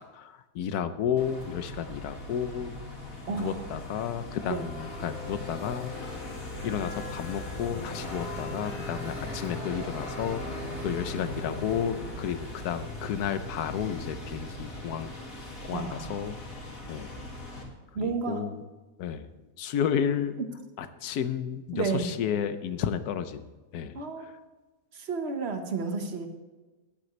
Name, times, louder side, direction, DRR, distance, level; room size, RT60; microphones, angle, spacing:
voice 1, 0.0-2.7 3.3-6.1 6.6-12.4 12.6-15.1 15.6-16.4 16.9-17.1 18.0-18.6 19.0-20.4 20.8-23.5 23.7-24.3, left 8 dB, 75° left, 11 dB, 1.3 m, -32 dB
sound 1, 1.2-17.6, left 1 dB, 55° left, 2.6 m, -38 dB
voice 2, 3.3-3.6 4.5-4.7 15.7-16.2 17.9-18.5 20.4-20.5 21.7-22.1 23.9-24.3 24.9-26.3, right 4 dB, 45° right, 5 dB, 1.4 m, -31 dB
15.0 x 10.5 x 3.2 m, 1.2 s
omnidirectional pair, 1.7 m